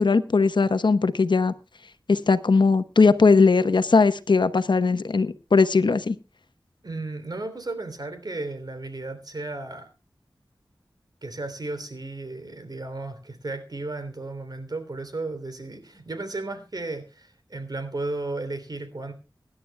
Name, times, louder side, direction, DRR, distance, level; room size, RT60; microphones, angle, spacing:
voice 1, 0.0-1.5 2.1-6.1, left 4 dB, 75° left, 0.9 m, -19 dB
voice 2, 6.8-9.9 11.2-19.1, right 2 dB, 55° right, 3.2 m, -34 dB
24.5 x 11.0 x 2.3 m
wide cardioid pair, 65°, 8 cm